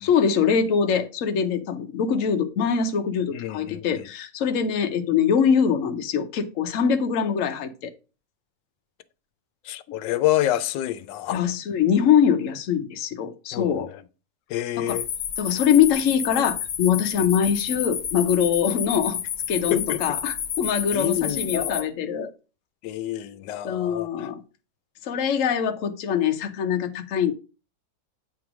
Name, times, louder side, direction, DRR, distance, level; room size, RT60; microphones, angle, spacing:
voice 1, 0.0-7.9 11.3-13.9 14.8-15.0 15.4-19.2 19.5-22.3 23.6-24.4 25.0-27.3, left 7 dB, 55° left, 1.0 m, -23 dB
voice 2, 3.3-4.1 9.6-11.4 13.5-13.9 14.5-15.1 19.7-20.2 20.9-21.9 22.8-24.3, left 13 dB, 90° left, 1.3 m, -28 dB
sound 1, 14.9-21.8, left 9 dB, 70° left, 1.4 m, -30 dB
8.8 x 3.2 x 5.9 m
omnidirectional pair, 1.9 m